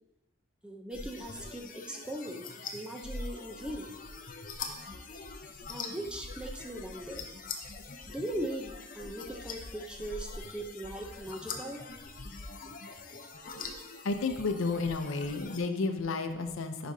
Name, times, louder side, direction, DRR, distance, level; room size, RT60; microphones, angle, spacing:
voice 1, 0.6-3.9 5.7-7.3 8.1-11.8, right 1 dB, 5° right, 2 dB, 0.5 m, -39 dB
sound 1, 0.9-15.6, left 4 dB, 40° left, 0.6 m, -43 dB
voice 2, 14.0-16.9, left 3 dB, 85° left, 7 dB, 0.6 m, -31 dB
10.0 x 5.1 x 2.7 m, 0.94 s
head